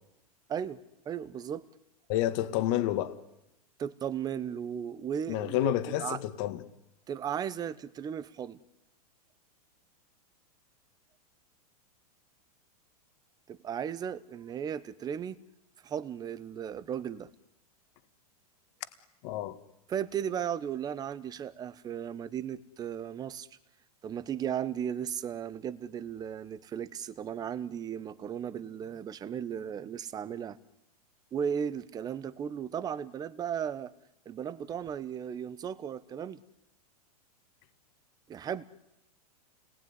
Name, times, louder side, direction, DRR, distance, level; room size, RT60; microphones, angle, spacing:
voice 1, 1.0-1.7 3.8-5.7 6.0-6.2 7.1-8.6 13.5-15.4 15.8-17.3 19.9-23.5 24.0-30.6 31.3-33.9 34.3-36.4 38.3-38.6, right 8 dB, 20° right, 16 dB, 1.0 m, -35 dB
voice 2, 2.1-3.2 5.3-6.6 19.2-19.6, left 14 dB, 45° left, 11 dB, 1.9 m, -29 dB
29.5 x 20.0 x 9.8 m, 0.91 s
supercardioid pair, 145°, 20 cm